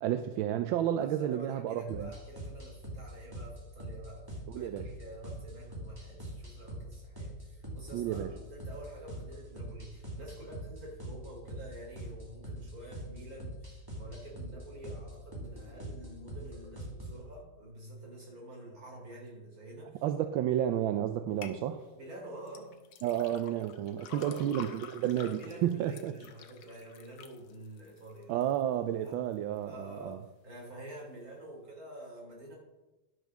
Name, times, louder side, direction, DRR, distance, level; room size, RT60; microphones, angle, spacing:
voice 1, 0.0-2.1 4.5-4.9 7.9-8.3 20.0-21.9 23.0-26.1 28.3-30.2, right 11 dB, 80° right, 9 dB, 1.4 m, -31 dB
voice 2, 0.9-20.0 21.9-22.8 24.1-24.5 25.2-28.3 29.0-29.2 29.6-32.5, right 1 dB, 45° right, -2 dB, 3.8 m, -48 dB
sound 1, 1.9-17.2, right 1 dB, 10° right, 1.9 m, -44 dB
sound 2, 21.4-21.6 22.5-28.6 29.1-29.6 30.1-30.2, left 7 dB, 85° left, 1.7 m, -50 dB
11.0 x 6.4 x 6.1 m, 1.0 s
omnidirectional pair, 2.2 m